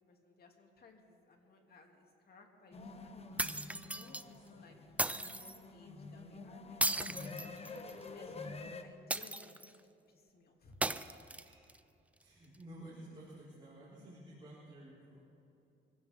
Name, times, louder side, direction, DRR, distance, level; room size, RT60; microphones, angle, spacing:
voice 1, 0.1-3.5 3.9-9.8 10.1-10.8, left 3 dB, 50° left, 1 dB, 2.7 m, -61 dB
sound 1, 2.7-8.8, left 3 dB, 30° left, 1.2 m, -48 dB
sound 2, 3.4-4.2 5.0-5.6 6.8-8.0 9.1-9.8 10.8-11.8, right 2 dB, 5° right, 0.5 m, -36 dB
voice 2, 12.2-15.2, right 1 dB, 25° right, -8 dB, 4.8 m, -53 dB
25.0 x 16.0 x 3.7 m, 2.8 s
cardioid pair, 90°, 20 cm